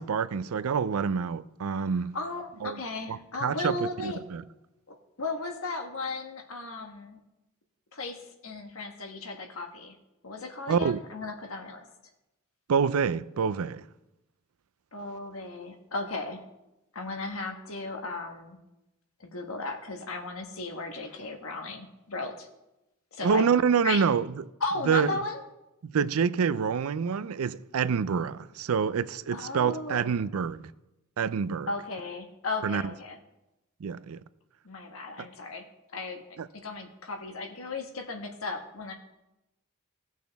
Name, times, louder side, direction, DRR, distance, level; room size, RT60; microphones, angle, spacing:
voice 1, 0.0-2.2 2.6-2.8 3.1-3.7 4.0-4.4 10.7-11.0 12.7-13.8 23.2-24.3 24.9-25.1 25.9-30.6 31.2-31.7 32.6-32.8 33.8-34.2 36.4-36.5, right 6 dB, 85° right, 0.4 m, -27 dB
voice 2, 2.1-4.2 4.9-7.2 7.9-9.9 10.2-11.9 14.9-16.4 16.9-18.6 19.2-22.5 23.1-23.4 23.8-24.0 24.6-25.4 29.3-30.1 31.7-33.2 34.6-35.6 35.9-36.2 36.6-38.9, left 3 dB, 75° left, 1.3 m, -35 dB
17.0 x 6.2 x 3.5 m
head